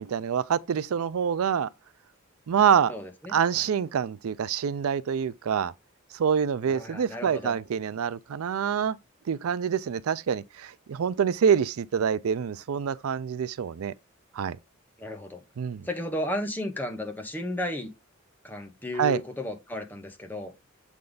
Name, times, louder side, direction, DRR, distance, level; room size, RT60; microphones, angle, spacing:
voice 1, 0.0-1.7 2.5-2.9 3.3-5.7 6.1-9.0 9.3-13.9 14.3-14.6 15.6-15.9 19.0-19.2, right 7 dB, 90° right, 0.4 m, -26 dB
voice 2, 2.9-3.6 6.7-7.5 15.0-15.4 15.8-17.9 18.4-20.5, left 1 dB, 10° left, 1.2 m, -34 dB
7.6 x 3.6 x 3.9 m
head